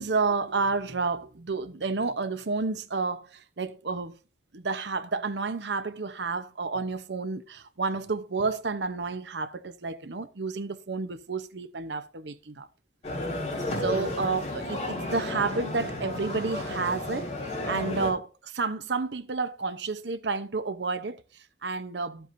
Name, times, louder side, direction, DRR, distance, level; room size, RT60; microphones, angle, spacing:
voice 1, 0.0-4.2 4.5-12.7 13.8-22.3, right 4 dB, 80° right, 0.8 m, -30 dB
sound 1, 13.0-18.1, left 1 dB, 40° left, 4.2 m, -32 dB
12.5 x 7.9 x 2.6 m
head